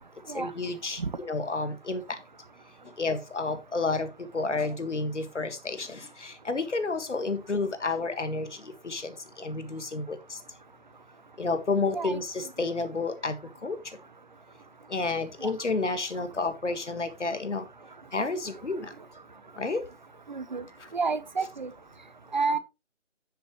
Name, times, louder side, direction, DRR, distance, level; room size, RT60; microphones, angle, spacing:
voice 1, 0.3-2.2 2.8-10.4 11.4-14.0 14.9-17.7 18.1-18.9 19.6-19.9 20.8-20.9, left 3 dB, 70° left, 1.8 m, -31 dB
voice 2, 20.3-20.6 20.9-21.7 22.3-22.6, right 4 dB, 40° right, 0.6 m, -29 dB
10.5 x 6.9 x 3.1 m
figure-of-eight pair, 150°, 36 cm